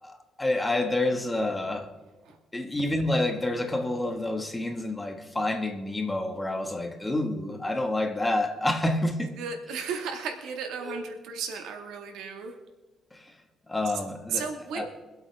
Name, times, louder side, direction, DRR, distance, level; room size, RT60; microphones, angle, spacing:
voice 1, 0.0-1.9 2.5-9.4 10.8-11.2 13.1-13.3 13.7-14.9, left 1 dB, 15° left, 1.7 m, -28 dB
voice 2, 9.4-12.5 14.3-14.9, right 6 dB, 85° right, 1.9 m, -34 dB
24.0 x 8.1 x 3.6 m
cardioid pair, 90°, 0 cm